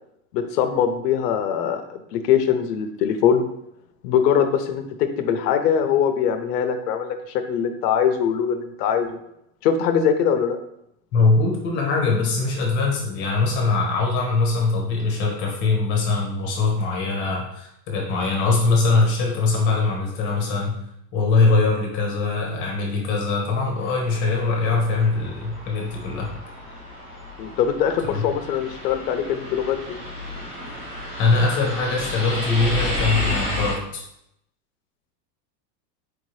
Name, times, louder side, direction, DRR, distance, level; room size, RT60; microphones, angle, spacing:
voice 1, 0.3-3.5 4.0-9.2 9.6-10.6 27.4-30.0, left 8 dB, 70° left, 8 dB, 0.6 m, -22 dB
voice 2, 11.1-20.7 21.1-26.3 28.0-28.2 31.2-34.0, left 3 dB, 25° left, -1 dB, 0.7 m, -22 dB
sound 1, 23.8-33.7, left 1 dB, 25° right, 0.3 m, -32 dB
4.5 x 2.7 x 3.1 m, 0.78 s
supercardioid pair, 165°, 50 cm